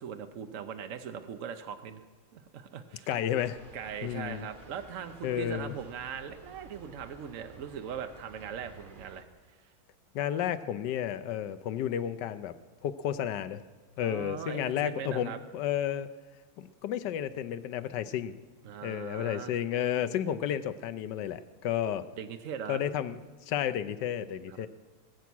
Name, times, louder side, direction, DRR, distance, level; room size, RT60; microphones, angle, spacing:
voice 1, 0.0-2.0 2.3-3.1 3.7-9.2 14.0-15.4 18.6-19.6 22.2-22.8 24.5-24.7, right 7 dB, 70° right, 7 dB, 0.7 m, -40 dB
voice 2, 3.1-3.6 4.0-4.5 5.2-5.7 10.1-12.5 12.8-13.6 14.0-16.1 16.6-18.3 18.8-22.1 22.7-23.2 23.5-24.7, left 10 dB, 70° left, 14 dB, 1.1 m, -32 dB
sound 1, 3.4-9.2, right 3 dB, 30° right, 0.9 m, -53 dB
21.0 x 8.3 x 6.1 m, 1.4 s
omnidirectional pair, 2.3 m